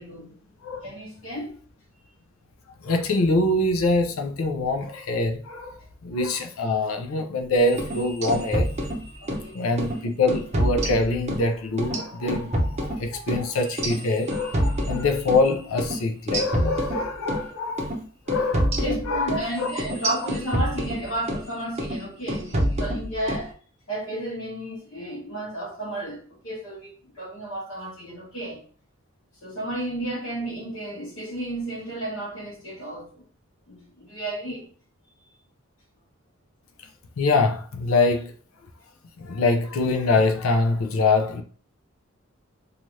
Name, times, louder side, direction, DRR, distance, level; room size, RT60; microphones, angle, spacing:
voice 1, 0.0-0.5 0.8-1.6 9.2-9.5 18.8-23.5 23.9-28.6 29.4-33.2 33.7-34.7, right 1 dB, 60° left, 1.1 m, -32 dB
voice 2, 2.8-8.7 9.5-18.0 18.3-18.8 19.0-19.7 36.8-36.9 37.2-38.3 39.2-41.4, left 2 dB, 80° left, 0.5 m, -24 dB
sound 1, 7.7-9.5 9.8-10.0 10.3-11.5 11.8-15.5 15.8-16.0 16.3-17.5 17.8-18.0 18.3-21.5 21.8-22.0 22.3-23.5, equal, 30° right, 0.6 m, -27 dB
2.7 x 2.4 x 3.1 m
head